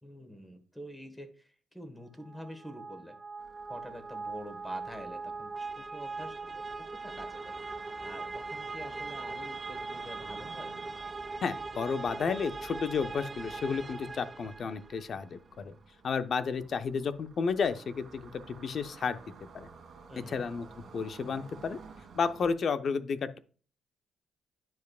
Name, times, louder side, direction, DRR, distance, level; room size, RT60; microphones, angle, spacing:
voice 1, 0.0-3.2 3.7-10.7 20.1-20.4, equal, 10° left, 5 dB, 1.4 m, -47 dB
sound 1, 2.2-15.0, right 3 dB, 25° right, 0.3 m, -40 dB
sound 2, 3.4-22.5, right 4 dB, 60° right, 1.6 m, -54 dB
voice 2, 11.4-15.7 16.0-19.7 20.1-20.7 20.9-21.8 22.1-23.4, left 5 dB, 50° left, 11 dB, 0.6 m, -32 dB
10.5 x 4.8 x 2.3 m, 0.39 s
cardioid pair, 90°, 0 cm